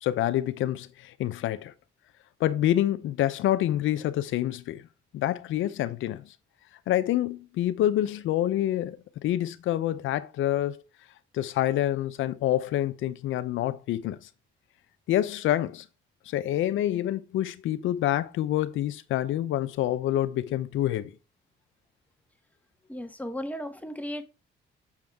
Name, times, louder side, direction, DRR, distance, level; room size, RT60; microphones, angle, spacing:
voice 1, 0.0-1.7 2.4-4.8 5.1-6.3 6.9-9.0 9.2-10.8 11.3-14.2 15.1-15.8 16.3-21.1, left 12 dB, 85° left, 0.7 m, -27 dB
voice 2, 22.9-24.2, equal, 5° left, 1.4 m, -35 dB
7.4 x 6.3 x 3.6 m
cardioid pair, 90°, 20 cm